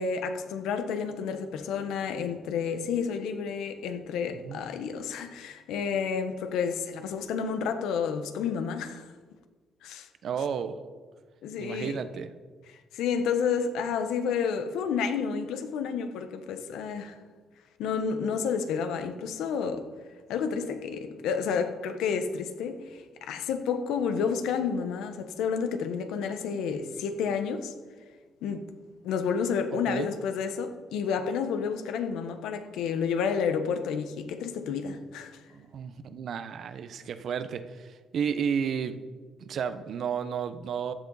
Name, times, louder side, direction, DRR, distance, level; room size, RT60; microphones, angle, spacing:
voice 1, 0.0-9.1 9.8-10.1 11.4-12.0 12.7-17.1 17.8-19.9 20.3-27.7 28.4-28.7 29.0-35.4, left 6 dB, 90° left, 1.1 m, -30 dB
voice 2, 4.3-4.6 10.2-10.8 11.6-12.3 29.9-30.1 35.5-39.0 39.4-40.9, right 7 dB, 65° right, 0.9 m, -32 dB
15.0 x 10.5 x 4.1 m
cardioid pair, 90°, 0 cm